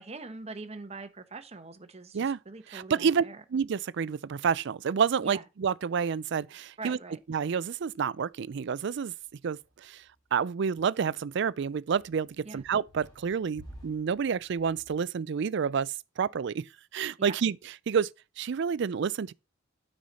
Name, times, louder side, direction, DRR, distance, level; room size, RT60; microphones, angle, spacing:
voice 1, 0.0-3.4 5.2-5.4 6.8-7.2 12.4-12.6 17.2-17.4, right 3 dB, 35° right, 0.9 m, -43 dB
voice 2, 2.7-3.2 3.5-7.0 7.3-9.1 9.4-10.0 10.3-16.6 16.9-17.6 17.9-18.1 18.4-19.3, right 6 dB, 65° right, 0.4 m, -29 dB
sound 1, 6.8-15.0, equal, 20° left, 3.1 m, -55 dB
9.3 x 5.4 x 4.2 m
head